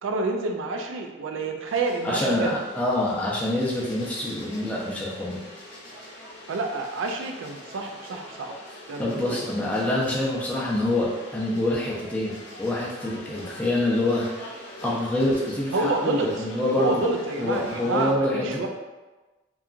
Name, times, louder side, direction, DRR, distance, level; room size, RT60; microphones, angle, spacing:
voice 1, 0.0-2.6 6.5-8.5 8.9-9.4 15.7-16.4 16.8-18.7, right 3 dB, 85° right, 4 dB, 0.3 m, -28 dB
sound 1, 1.7-18.1, left 1 dB, 60° left, 0.6 m, -43 dB
voice 2, 2.0-5.4 9.0-14.5 14.8-17.0 17.4-18.7, left 1 dB, 10° left, -6 dB, 0.4 m, -26 dB
2.8 x 2.3 x 2.4 m, 1.2 s
head